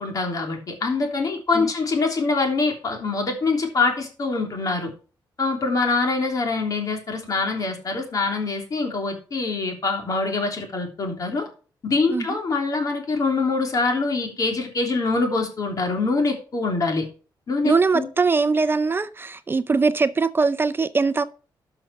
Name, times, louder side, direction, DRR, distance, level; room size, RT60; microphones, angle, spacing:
voice 1, 0.0-4.9 5.4-11.5 11.9-17.0 17.5-18.1, left 3 dB, 45° left, 3.1 m, -24 dB
voice 2, 17.6-21.2, right 4 dB, 25° right, 0.5 m, -21 dB
12.5 x 5.8 x 4.8 m
cardioid pair, 120°, 8 cm